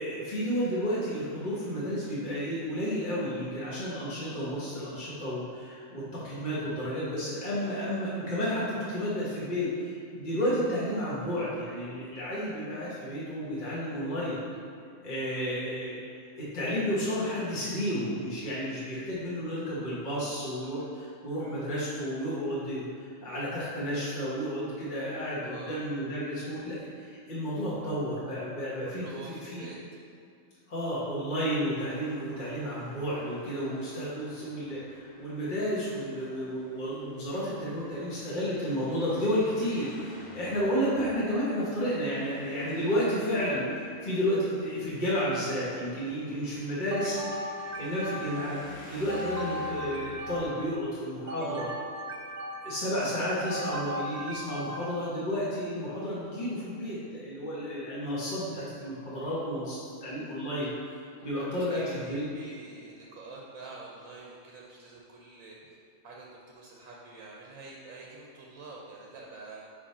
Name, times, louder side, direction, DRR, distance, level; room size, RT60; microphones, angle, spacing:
voice 1, 0.0-14.4 15.0-16.0 16.4-29.6 30.7-47.2 47.8-48.6 48.8-51.7 52.6-62.2, equal, 40° left, -9 dB, 1.2 m, -32 dB
voice 2, 25.4-25.8 28.8-29.8 61.2-65.6 66.0-69.7, right 3 dB, 80° right, -3 dB, 1.1 m, -46 dB
Traffic noise roadway noise, 31.9-50.6, left 1 dB, 80° left, 2.2 m, -52 dB
sound 1, 46.9-48.6 49.1-50.8 51.3-52.9 53.4-55.2, equal, 55° right, 0.4 m, -37 dB
5.1 x 5.0 x 4.1 m, 2.4 s
omnidirectional pair, 1.5 m